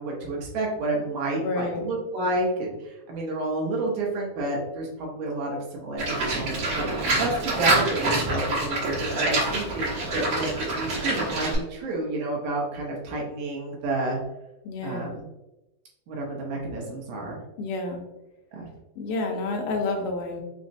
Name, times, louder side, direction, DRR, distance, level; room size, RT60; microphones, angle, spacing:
voice 1, 0.0-14.2 14.8-15.2 16.1-17.4 18.5-18.7, right 2 dB, 75° right, -2 dB, 2.2 m, -30 dB
voice 2, 1.4-1.9 14.6-15.1 17.6-18.0 19.0-20.4, left 3 dB, 85° left, 2 dB, 2.3 m, -29 dB
Livestock farm animals working animals, 6.0-11.6, right 2 dB, 55° right, 1.4 m, -26 dB
6.0 x 2.1 x 2.6 m, 0.95 s
omnidirectional pair, 3.8 m